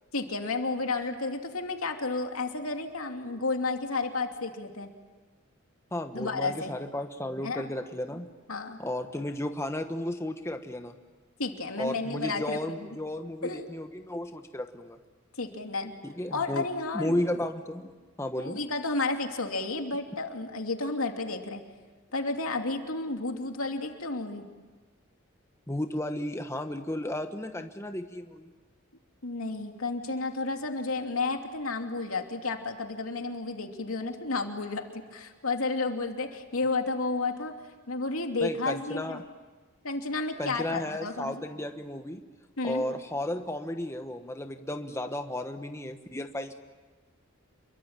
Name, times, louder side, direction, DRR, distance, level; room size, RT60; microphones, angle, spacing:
voice 1, 0.1-4.9 6.1-6.7 7.4-7.7 8.5-8.8 11.4-12.9 13.4-13.7 15.4-15.9 16.3-17.3 18.4-21.6 22.1-24.5 29.2-37.5 37.9-39.2 39.8-41.4 42.6-42.8, left 3 dB, 90° left, 4 dB, 2.8 m, -32 dB
voice 2, 5.9-8.3 8.8-10.9 11.8-15.0 16.0-16.7 16.9-17.9 18.2-18.6 25.7-28.5 38.4-39.2 40.4-42.2 42.6-46.5, left 1 dB, 15° left, 6 dB, 1.1 m, -33 dB
28.0 x 23.0 x 9.0 m, 1.3 s
head